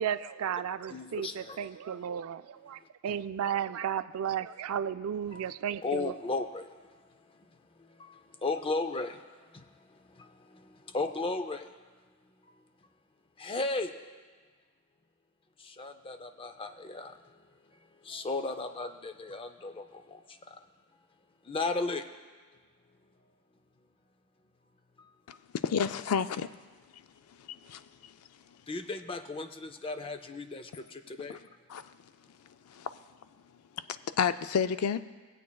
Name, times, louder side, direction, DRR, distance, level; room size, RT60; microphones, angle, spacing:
voice 1, 0.0-6.1, right 8 dB, 80° right, 0.3 m, -34 dB
voice 2, 0.9-1.6 5.3-5.5 5.8-6.7 8.0-8.1 8.4-9.2 10.9-11.6 13.4-13.9 15.8-17.1 18.1-19.8 21.5-22.0 28.7-31.4, left 3 dB, 25° left, 0.5 m, -34 dB
voice 3, 25.3-26.5 27.7-27.8 31.7-31.8 32.8-32.9 34.2-35.0, left 7 dB, 90° left, 0.4 m, -29 dB
20.5 x 8.3 x 2.3 m
head